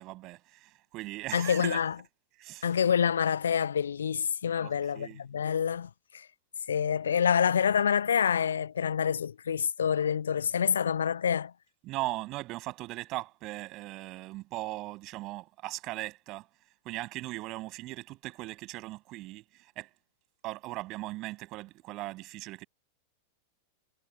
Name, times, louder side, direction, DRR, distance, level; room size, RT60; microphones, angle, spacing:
voice 1, 0.0-1.8 2.4-2.7 4.6-5.2 11.8-16.5 16.8-19.9 20.4-22.6, right 19 dB, 40° right, 6.5 m, -39 dB
voice 2, 1.3-2.0 2.6-6.3 6.7-11.5, left 7 dB, 70° left, 0.5 m, -27 dB
figure-of-eight pair, 90°, 0 cm